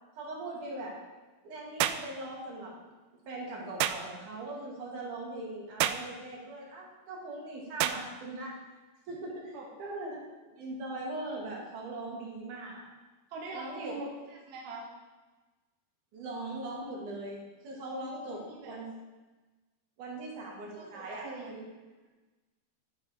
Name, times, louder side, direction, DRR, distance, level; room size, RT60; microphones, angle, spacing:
voice 1, 0.2-1.0 1.4-2.7 3.3-8.5 9.1-10.2 10.5-12.9 13.5-13.9 16.1-18.9 20.0-21.6, right 2 dB, 55° right, -2 dB, 3.3 m, -40 dB
sound 1, 1.8-2.1 3.8-4.0 5.8-6.1 7.8-8.0, right 12 dB, 85° right, 2.1 m, -28 dB
voice 2, 13.3-14.9 18.5-18.8 20.8-21.7, right 2 dB, 70° right, -3 dB, 3.3 m, -42 dB
10.5 x 8.9 x 4.8 m, 1.2 s
omnidirectional pair, 4.7 m